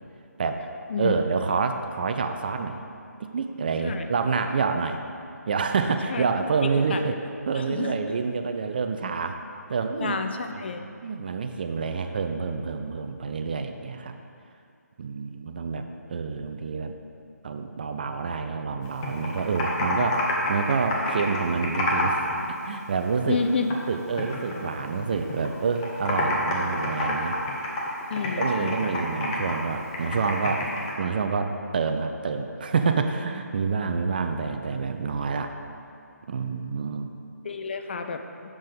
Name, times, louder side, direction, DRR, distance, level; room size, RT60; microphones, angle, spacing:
voice 1, 1.0-2.8 3.2-5.0 5.5-7.2 7.5-9.4 9.7-10.2 10.5-14.1 15.0-15.8 16.1-16.9 17.4-20.2 20.5-22.2 22.5-23.4 23.9-27.4 28.4-30.7 31.0-35.5 36.3-37.1, right 5 dB, 35° right, 6 dB, 0.4 m, -27 dB
voice 2, 7.5-7.9 10.0-10.8 23.3-23.7 28.1-28.9 37.4-38.2, left 5 dB, 40° left, 7 dB, 0.4 m, -29 dB
Computer keyboard, 18.8-22.4 22.6-23.9 24.2-25.5 25.8-30.9, left 2 dB, 20° left, 0.9 m, -28 dB
7.3 x 5.3 x 5.2 m, 2.5 s
figure-of-eight pair, 150°, 9 cm